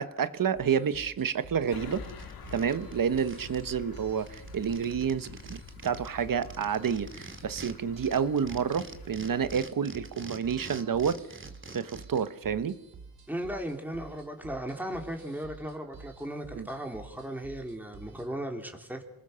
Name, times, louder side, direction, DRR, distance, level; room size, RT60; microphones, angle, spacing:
voice 1, 0.0-2.0 2.5-11.4 11.7-12.8 16.6-16.7, right 7 dB, 65° right, 13 dB, 1.3 m, -29 dB
sound 1, 0.5-18.3, right 4 dB, 90° right, 2.9 m, -51 dB
sound 2, 1.4-1.5 1.8-3.7 4.0-4.1 4.3-7.7 8.0-12.3, right 3 dB, 35° right, 2.6 m, -46 dB
sound 3, 1.7-9.6, left 6 dB, 85° left, 1.9 m, -48 dB
voice 2, 13.3-19.0, right 1 dB, 5° right, 3 dB, 3.6 m, -36 dB
27.5 x 19.5 x 6.9 m, 0.84 s
cardioid pair, 65°, 35 cm